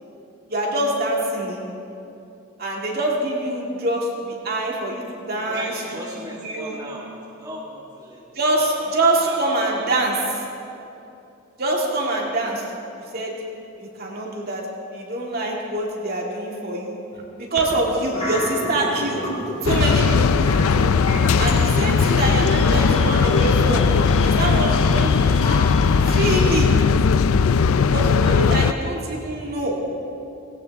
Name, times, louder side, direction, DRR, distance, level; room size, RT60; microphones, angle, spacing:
voice 1, 0.5-1.6 2.6-5.7 6.1-6.8 8.4-10.2 11.6-12.6 13.1-13.3 13.8-14.7 14.9-17.0 17.4-19.2 19.6-20.5 21.4-23.9 24.2-25.6 26.0-26.7 27.9-29.8, right 2 dB, 45° right, -2 dB, 2.3 m, -24 dB
voice 2, 5.5-8.2 8.5-9.9 22.0-22.2 28.3-28.7, right 1 dB, 20° right, -5 dB, 1.7 m, -37 dB
sound 1, 18.1-26.8, left 2 dB, 30° left, 3.3 m, -32 dB
Ambience - Train Station - Outside, 19.7-28.7, left 5 dB, 85° left, 0.4 m, -18 dB
18.5 x 17.5 x 3.5 m, 2.7 s
head